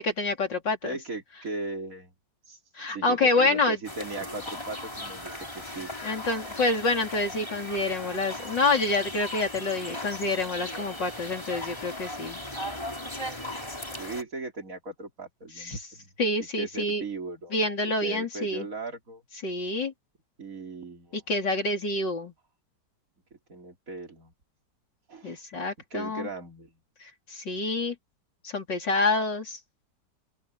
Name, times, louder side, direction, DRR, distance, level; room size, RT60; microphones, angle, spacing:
voice 1, 0.0-1.0 2.7-3.8 6.0-12.4 15.6-15.9 16.2-17.0 17.5-18.7 19.4-19.9 21.1-22.3 25.2-26.3 27.0-28.0 28.4-29.6, left 2 dB, 80° left, 4.8 m, -27 dB
voice 2, 0.8-2.1 2.5-2.6 2.9-5.9 8.0-8.2 10.9-11.0 14.0-16.1 16.4-17.5 18.0-19.2 20.4-21.2 23.3-24.3 25.1-25.4 25.9-26.8, right 2 dB, 50° right, 3.8 m, -38 dB
sound 1, 3.8-14.2, left 1 dB, 15° left, 3.2 m, -37 dB
open air
omnidirectional pair, 1.9 m